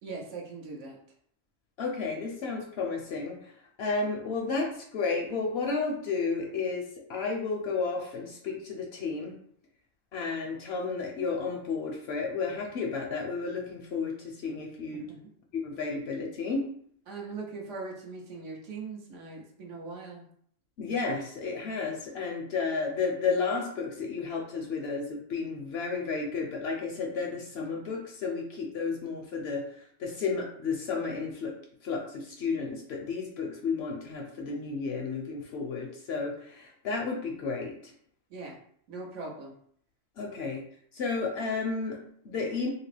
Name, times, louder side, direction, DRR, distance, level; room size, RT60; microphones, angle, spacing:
voice 1, 0.0-1.0 14.9-15.2 17.1-20.2 38.3-38.6 38.9-39.5, right 3 dB, 70° right, -1 dB, 1.0 m, -40 dB
voice 2, 1.8-3.5 3.8-9.4 10.1-15.0 15.6-16.6 20.8-29.6 30.0-31.5 31.8-37.9 40.2-40.6 40.9-42.7, left 4 dB, 65° left, 1 dB, 0.7 m, -32 dB
2.9 x 2.8 x 3.2 m, 0.63 s
omnidirectional pair, 1.4 m